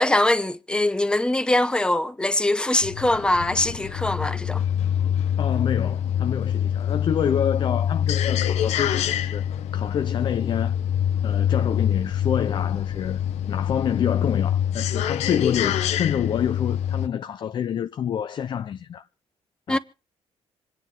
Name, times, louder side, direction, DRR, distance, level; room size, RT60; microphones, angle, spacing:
voice 1, 0.0-4.6 19.7-19.8, left 1 dB, 10° left, 0.7 m, -22 dB
sound 1, 2.8-17.1, left 9 dB, 80° left, 0.8 m, -25 dB
voice 2, 5.4-9.4 9.7-10.8 11.2-13.2 13.5-19.1 19.7-19.8, left 8 dB, 45° left, 0.6 m, -27 dB
27.0 x 9.8 x 3.7 m
cardioid pair, 145°, 11 cm